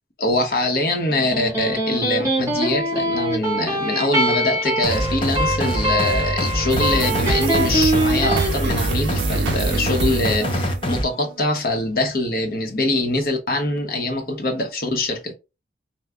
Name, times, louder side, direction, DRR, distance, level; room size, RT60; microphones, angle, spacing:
voice 1, 0.2-15.3, left 2 dB, 55° left, 1.1 m, -23 dB
Electric guitar, 1.1-8.5, right 1 dB, 20° right, 1.7 m, -23 dB
sound 1, 4.8-11.0, equal, 30° left, 0.7 m, -25 dB
sound 2, 6.7-11.4, right 6 dB, 80° right, 0.4 m, -28 dB
3.7 x 2.4 x 4.4 m
head